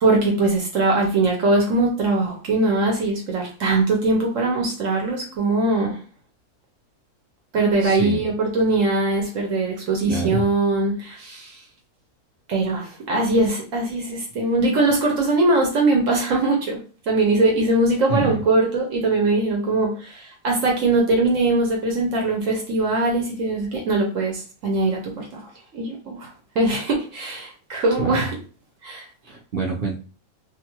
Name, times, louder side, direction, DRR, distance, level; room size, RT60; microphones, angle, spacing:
voice 1, 0.0-6.0 7.5-11.5 12.5-16.8 17.1-25.4 25.7-26.3 26.6-28.3 28.8-29.0, right 2 dB, 65° right, 0 dB, 1.0 m, -21 dB
voice 2, 7.8-8.2 10.0-10.5 18.1-18.4 27.9-28.3 29.2-30.0, right 3 dB, 45° right, -1 dB, 0.8 m, -26 dB
2.6 x 2.4 x 3.0 m, 0.37 s
omnidirectional pair, 1.6 m